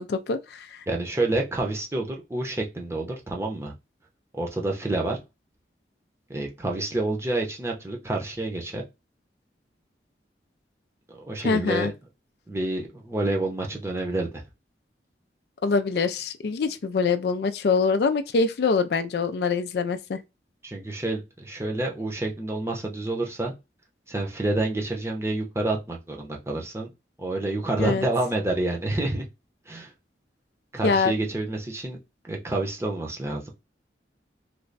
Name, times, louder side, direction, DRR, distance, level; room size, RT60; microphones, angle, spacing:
voice 1, 0.0-0.7 11.4-11.9 15.6-20.2 27.8-28.1 30.8-31.2, left 4 dB, 65° left, 0.4 m, -24 dB
voice 2, 0.9-3.7 4.3-5.2 6.3-8.8 11.1-11.9 12.5-14.3 20.6-23.5 24.1-26.9 27.2-29.2 29.7-29.9 30.7-32.0 32.2-33.5, right 2 dB, 15° right, 0.7 m, -28 dB
3.3 x 2.2 x 3.9 m
head